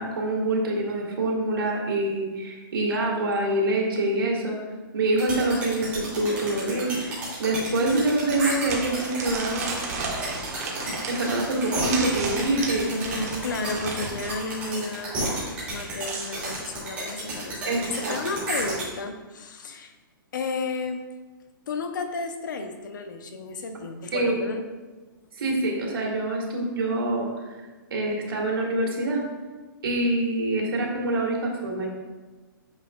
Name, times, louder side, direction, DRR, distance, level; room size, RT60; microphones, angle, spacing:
voice 1, 0.0-4.6 4.9-9.8 11.1-12.9 17.7-18.3 24.1-24.4 25.4-27.3 27.6-27.7 27.9-29.2 29.8-31.9, right 2 dB, 90° right, -1 dB, 2.0 m, -25 dB
sound 1, 5.2-18.8, right 2 dB, 10° right, 2.1 m, -32 dB
sound 2, 8.3-14.4 15.6-16.5, right 3 dB, 45° right, 1.3 m, -34 dB
voice 2, 12.8-15.1 15.7-19.9 20.3-21.0 21.7-24.6, left 3 dB, 60° left, 7 dB, 0.8 m, -32 dB
8.7 x 5.7 x 2.3 m, 1.3 s
hypercardioid pair, 170°, 12 cm